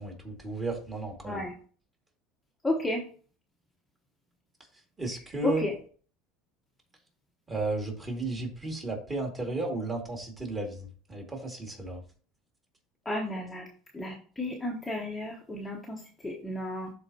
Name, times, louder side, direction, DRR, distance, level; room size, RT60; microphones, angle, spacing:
voice 1, 0.0-1.4 5.0-5.6 7.5-12.0, right 2 dB, 20° right, 1 dB, 2.1 m, -34 dB
voice 2, 2.6-3.0 5.4-5.7 13.0-13.6 13.9-16.9, left 1 dB, 5° left, -2 dB, 1.1 m, -32 dB
11.5 x 4.2 x 2.8 m, 0.42 s
cardioid pair, 145°, 0 cm